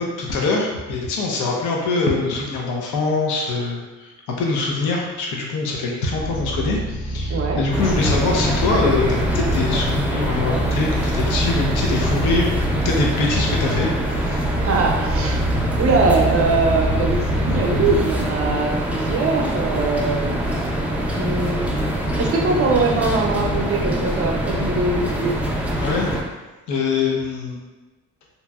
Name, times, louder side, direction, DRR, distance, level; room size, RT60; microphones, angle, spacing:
voice 1, 0.0-12.5 12.7-13.9 14.2-14.5 25.8-26.1 26.7-27.6, left 3 dB, 85° left, -1 dB, 0.6 m, -23 dB
sound 1, 6.0-18.5, equal, 55° left, 1.4 m, -26 dB
voice 2, 7.3-7.6 14.6-15.4 15.8-20.7 21.1-21.8 22.2-25.4, right 3 dB, 50° right, 0 dB, 0.6 m, -22 dB
sound 2, 7.7-26.2, right 1 dB, 5° right, 0.4 m, -24 dB
2.9 x 2.7 x 2.3 m, 1.2 s
cardioid pair, 90°, 30 cm